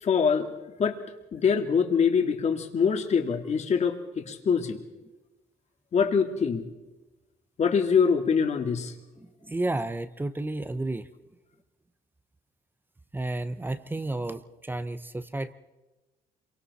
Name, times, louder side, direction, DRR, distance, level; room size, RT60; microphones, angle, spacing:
voice 1, 0.0-0.5 0.8-1.0 1.3-4.8 5.9-6.7 7.6-8.9, left 6 dB, 40° left, 5 dB, 2.2 m, -24 dB
voice 2, 9.2-11.1 13.1-15.5, right 2 dB, 10° right, 12 dB, 0.8 m, -32 dB
27.0 x 24.0 x 4.2 m, 1.1 s
cardioid pair, 110°, 17 cm